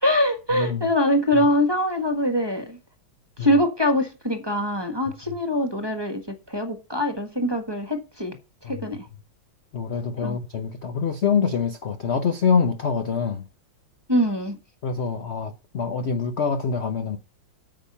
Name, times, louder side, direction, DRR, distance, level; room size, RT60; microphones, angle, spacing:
voice 1, 0.0-2.8 3.4-8.3 8.6-9.1 10.2-10.4 14.1-14.6, left 1 dB, 15° right, 1.3 m, -23 dB
voice 2, 0.5-0.9 1.3-1.5 3.4-3.5 8.6-8.9 9.7-13.4 14.8-17.2, left 6 dB, 50° left, 0.8 m, -25 dB
9.2 x 7.1 x 5.5 m
omnidirectional pair, 2.2 m